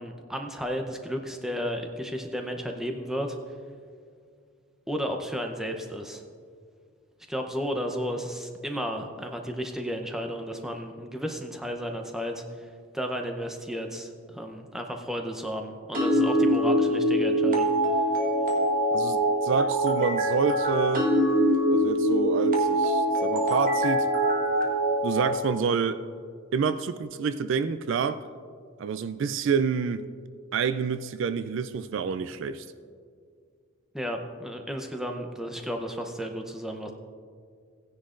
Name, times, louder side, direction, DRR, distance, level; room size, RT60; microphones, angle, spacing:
voice 1, 0.0-3.4 4.9-6.2 7.3-12.7 12.9-17.7 33.9-36.9, equal, ahead, 3 dB, 0.6 m, -33 dB
sound 1, 15.9-25.3, equal, 40° right, 1.4 m, -23 dB
voice 2, 18.9-21.1 21.7-24.1 25.0-26.0 26.5-28.2 28.8-30.1 30.5-32.7, right 6 dB, 60° right, 12 dB, 0.3 m, -28 dB
16.5 x 10.0 x 2.5 m, 2.1 s
head